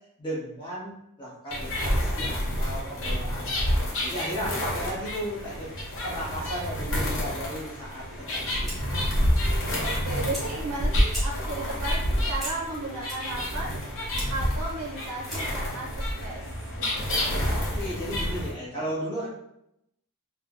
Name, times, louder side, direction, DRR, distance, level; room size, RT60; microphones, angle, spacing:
voice 1, 0.2-0.9 1.2-5.7 6.0-9.1 17.6-19.3, equal, 20° left, -8 dB, 1.2 m, -35 dB
sound 1, 1.5-18.5, equal, 60° left, 0.8 m, -28 dB
Fire, 8.2-15.7, equal, ahead, 0.8 m, -43 dB
voice 2, 9.8-13.8 14.0-16.5 16.8-17.3, right 2 dB, 80° right, -3 dB, 0.6 m, -35 dB
3.5 x 2.2 x 2.4 m, 0.78 s
head